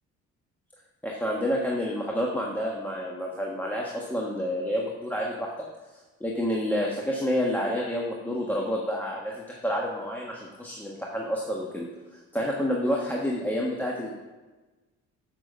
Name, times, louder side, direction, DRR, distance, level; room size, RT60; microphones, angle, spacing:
voice 1, 1.0-5.5 6.2-11.9 12.3-14.1, equal, 5° left, -3 dB, 1.4 m, -29 dB
7.6 x 5.9 x 6.7 m, 1.2 s
cardioid pair, 80°, 30 cm